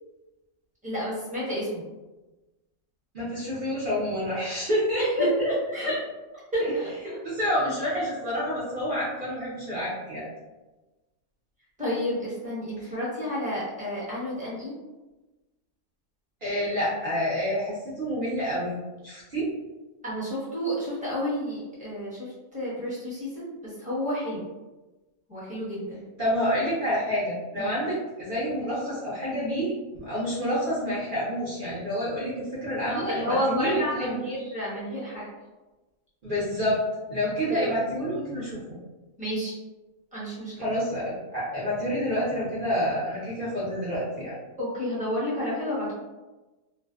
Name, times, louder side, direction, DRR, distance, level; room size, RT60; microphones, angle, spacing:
voice 1, 0.8-1.8 5.0-6.0 6.5-7.2 11.8-14.7 20.0-24.4 25.3-26.1 27.6-27.7 32.9-35.3 37.5-37.7 39.2-39.5 40.1-40.5 44.6-45.9, equal, 5° right, -9 dB, 0.7 m, -30 dB
voice 2, 3.1-5.5 7.2-10.3 16.4-18.8 19.0-19.5 26.2-34.1 36.2-36.8 37.1-38.6 40.6-44.3, equal, 50° right, -8 dB, 0.6 m, -28 dB
2.5 x 2.1 x 2.3 m, 1.1 s
omnidirectional pair, 1.5 m